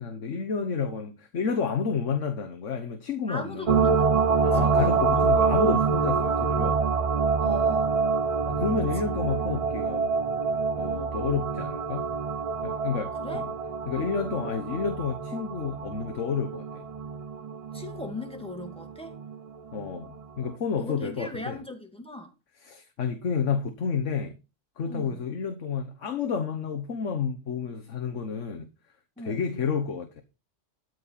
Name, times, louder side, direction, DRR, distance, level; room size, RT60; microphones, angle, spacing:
voice 1, 0.0-3.8 4.4-6.8 8.5-10.1 10.8-12.1 12.6-13.5 13.9-16.8 19.7-21.6 22.6-24.3 24.8-28.7 29.2-30.2, left 6 dB, 80° left, 1.5 m, -30 dB
voice 2, 3.3-4.2 4.5-5.3 7.4-7.9 13.2-13.4 17.7-19.2 20.8-22.3 24.9-25.2 29.2-29.4, left 1 dB, 5° left, 2.1 m, -39 dB
sound 1, 3.7-19.4 19.8-19.9, right 5 dB, 50° right, 0.4 m, -26 dB
13.0 x 4.7 x 5.7 m
omnidirectional pair, 1.3 m